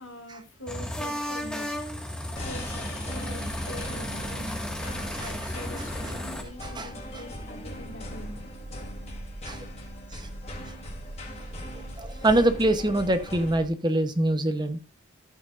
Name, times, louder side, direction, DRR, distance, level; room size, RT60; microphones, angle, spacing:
voice 1, 0.0-1.7 2.4-4.6 5.2-8.4, left 1 dB, 80° left, 2.5 m, -43 dB
sound 1, 0.7-6.4, equal, 5° left, 1.8 m, -34 dB
sound 2, 2.4-13.6, equal, 30° left, 3.2 m, -40 dB
Growling, 7.4-13.3, right 1 dB, 60° right, 1.5 m, -45 dB
voice 2, 12.0-14.8, right 1 dB, 20° right, 1.0 m, -24 dB
14.5 x 8.8 x 2.6 m
head